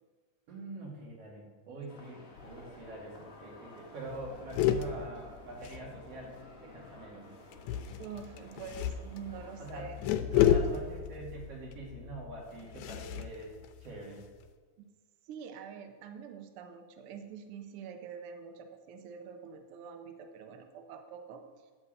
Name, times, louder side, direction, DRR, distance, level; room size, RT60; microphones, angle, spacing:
voice 1, 0.5-6.4 6.6-7.3 9.6-9.9 10.3-13.5 13.8-14.2, right 2 dB, 55° right, -3 dB, 3.3 m, -44 dB
sound 1, 1.9-9.8, left 1 dB, 50° left, 0.7 m, -53 dB
sound 2, 2.4-2.8 3.1-3.2 3.5-3.7 4.1-6.4 7.5-14.4, left 9 dB, 80° left, 1.9 m, -33 dB
voice 2, 8.0-10.1 10.4-10.5 10.8-10.9 14.8-14.9 15.2-21.7, right 7 dB, 75° right, 6 dB, 1.3 m, -46 dB
9.8 x 6.1 x 7.8 m, 1.4 s
omnidirectional pair, 3.5 m